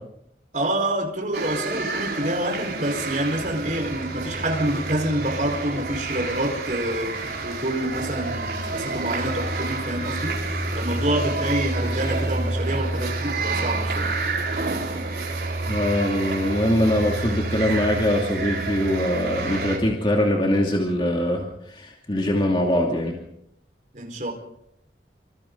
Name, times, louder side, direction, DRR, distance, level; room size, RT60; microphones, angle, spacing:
voice 1, 0.5-10.4 10.7-14.2 23.9-24.3, right 1 dB, 45° right, 4.7 m, -27 dB
sound 1, 1.3-19.8, right 3 dB, 65° right, 4.5 m, -29 dB
sound 2, 3.4-11.4, equal, 15° right, 7.8 m, -43 dB
voice 2, 15.7-23.1, left 1 dB, 30° left, 2.7 m, -22 dB
28.0 x 24.5 x 4.0 m
head